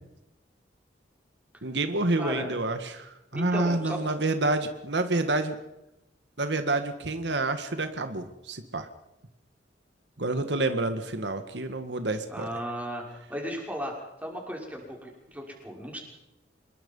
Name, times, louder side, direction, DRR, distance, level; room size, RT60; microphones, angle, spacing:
voice 1, 1.6-5.6 6.4-8.9 10.2-12.5, right 2 dB, 70° right, 8 dB, 1.7 m, -28 dB
voice 2, 2.1-2.5 3.3-4.0 12.3-13.0 13.3-13.9 14.2-16.0, equal, 10° right, 0 dB, 6.0 m, -35 dB
27.0 x 22.0 x 5.6 m, 0.92 s
head